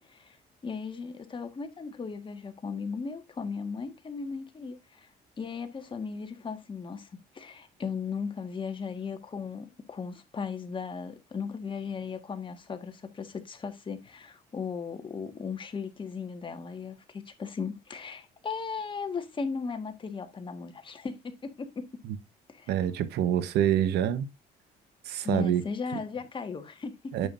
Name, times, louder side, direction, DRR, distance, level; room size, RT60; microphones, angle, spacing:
voice 1, 0.1-5.1 5.4-21.9 22.5-22.7 25.2-27.0, left 5 dB, 30° left, 1.5 m, -37 dB
voice 2, 22.7-24.3 25.0-25.7 27.1-27.3, right 10 dB, 80° right, 1.0 m, -26 dB
9.4 x 7.3 x 2.5 m
cardioid pair, 110°, 17 cm